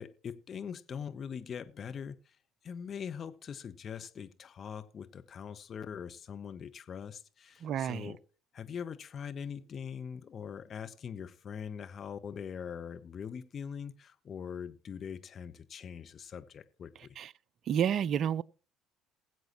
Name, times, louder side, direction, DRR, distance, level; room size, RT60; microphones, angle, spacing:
voice 1, 0.0-2.4 2.6-8.2 8.5-17.1, left 7 dB, 40° left, 0.9 m, -42 dB
voice 2, 7.6-8.1 17.2-17.3 17.7-18.4, right 9 dB, 50° right, 0.4 m, -30 dB
20.0 x 7.9 x 3.0 m
hypercardioid pair, 60°, 0 cm